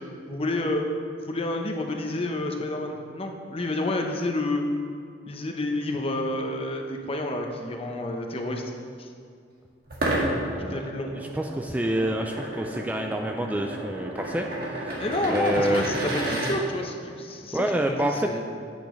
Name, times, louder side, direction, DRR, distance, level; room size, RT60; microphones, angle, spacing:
voice 1, 0.3-0.8 1.2-4.6 5.3-8.6 9.0-9.1 10.7-11.1 15.0-18.4, left 2 dB, 35° left, 3 dB, 0.8 m, -29 dB
sound 1, 9.9-16.6, right 1 dB, 60° right, 1.7 m, -31 dB
voice 2, 10.5-10.9 11.1-15.0 15.3-15.8 17.5-18.3, right 1 dB, 10° right, 3 dB, 0.3 m, -28 dB
10.0 x 8.3 x 3.2 m, 2.3 s
head